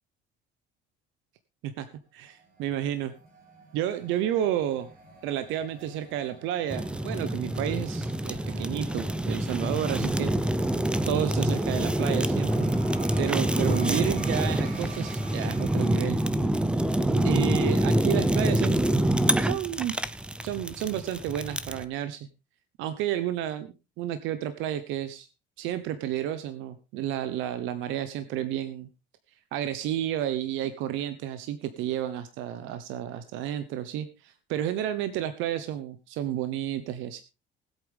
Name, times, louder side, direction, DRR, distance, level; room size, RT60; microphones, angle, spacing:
voice 1, 2.1-3.1 3.7-4.9 5.2-10.3 11.1-12.7 13.2-16.2 17.1-18.9 19.4-19.9 20.4-22.3 22.8-25.3 25.6-28.9 29.5-37.2, right 11 dB, 80° right, 11 dB, 1.1 m, -31 dB
sound 1, 2.3-16.9, right 3 dB, 45° right, 4.6 m, -48 dB
Fire, 6.7-21.8, right 1 dB, 5° right, 0.6 m, -26 dB
19.5 x 8.4 x 3.6 m, 0.29 s
cardioid pair, 155°, 20 cm